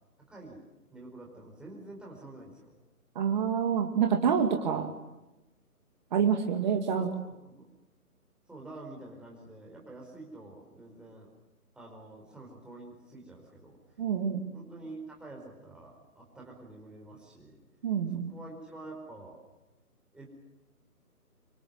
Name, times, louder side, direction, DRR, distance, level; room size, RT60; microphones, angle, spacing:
voice 1, 0.3-0.6 0.9-2.7 6.9-7.2 7.5-7.7 8.5-11.3 11.7-14.0 14.5-17.6 18.1-19.4 20.1-20.3, right 2 dB, ahead, -2 dB, 4.8 m, -47 dB
voice 2, 3.2-4.9 6.1-7.1 14.0-14.4 17.8-18.3, right 7 dB, 30° right, 4 dB, 2.3 m, -27 dB
27.0 x 25.0 x 7.8 m, 0.99 s
figure-of-eight pair, 150°, 45 cm